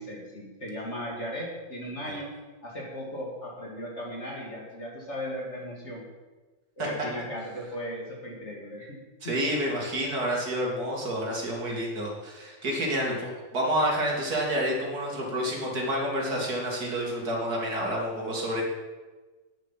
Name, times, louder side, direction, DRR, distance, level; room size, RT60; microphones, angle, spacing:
voice 1, 0.0-2.3 2.6-6.1 6.8-9.4, equal, 35° left, -2 dB, 2.4 m, -37 dB
voice 2, 9.2-18.6, equal, 55° right, -2 dB, 2.8 m, -29 dB
10.5 x 9.2 x 5.7 m, 1.3 s
omnidirectional pair, 2.0 m